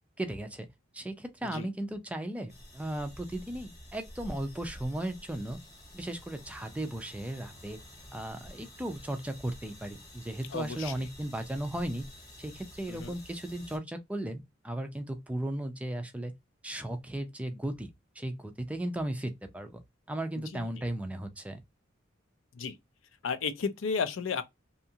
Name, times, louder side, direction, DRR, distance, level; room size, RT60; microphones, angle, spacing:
voice 1, 0.2-0.7 0.9-5.6 5.9-7.8 8.1-12.0 12.4-16.3 16.6-19.8 20.1-21.6, right 1 dB, 5° right, 0.4 m, -36 dB
sound 1, 2.5-13.8, left 1 dB, 20° left, 0.9 m, -50 dB
voice 2, 10.5-11.1 12.9-13.2 20.5-20.9 22.5-22.8 23.2-24.4, left 5 dB, 80° left, 0.5 m, -33 dB
2.7 x 2.3 x 2.7 m
head